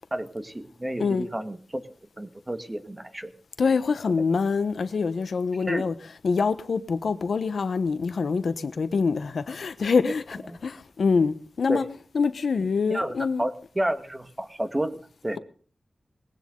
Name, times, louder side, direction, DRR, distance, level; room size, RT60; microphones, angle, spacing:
voice 1, 0.1-1.8 2.2-3.3 5.7-5.9 11.7-11.8 12.9-15.4, right 1 dB, 20° right, 1.8 m, -31 dB
voice 2, 3.6-5.9 6.2-11.8 12.1-13.4, left 5 dB, 80° left, 1.2 m, -25 dB
20.0 x 16.0 x 3.9 m
wide cardioid pair, 85°, 0 cm